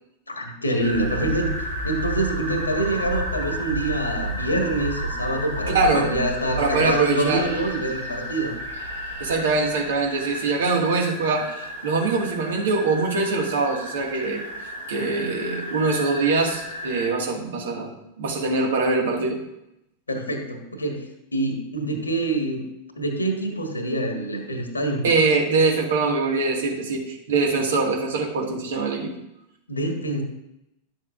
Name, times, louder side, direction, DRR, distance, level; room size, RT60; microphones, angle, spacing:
voice 1, 0.3-1.5 1.8-8.5 20.1-21.0 21.3-22.6 22.9-25.0 29.7-30.2, right 1 dB, 80° left, 4 dB, 1.5 m, -26 dB
sound 1, 0.8-17.1, right 1 dB, 80° right, 2.3 m, -32 dB
voice 2, 5.7-6.1 6.6-7.5 9.2-14.4 14.9-19.4 25.0-29.1, right 3 dB, 60° right, 0 dB, 1.8 m, -23 dB
11.5 x 7.4 x 2.5 m, 0.85 s
figure-of-eight pair, 90°, 0 cm